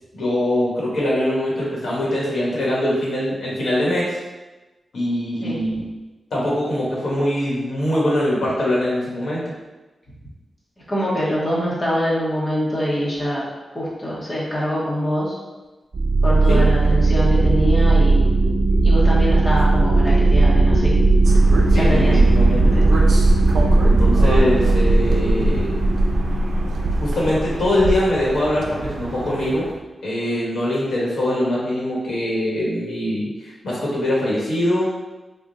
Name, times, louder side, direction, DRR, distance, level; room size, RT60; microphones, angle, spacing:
voice 1, 0.1-4.2 4.9-5.8 6.3-9.4 16.5-16.6 21.7-22.8 23.8-25.7 27.0-29.7 30.0-34.9, left 1 dB, 80° left, -6 dB, 1.2 m, -22 dB
voice 2, 10.9-13.5 13.7-15.4 16.2-18.3 18.8-21.0 21.7-22.2 22.7-22.9, equal, 25° left, -6 dB, 0.8 m, -24 dB
sound 1, 15.9-28.2, right 2 dB, 40° right, 0.9 m, -16 dB
sound 2, 21.2-29.8, right 2 dB, 80° right, 0.5 m, -30 dB
3.5 x 2.1 x 3.9 m, 1.1 s
wide cardioid pair, 135°, 0 cm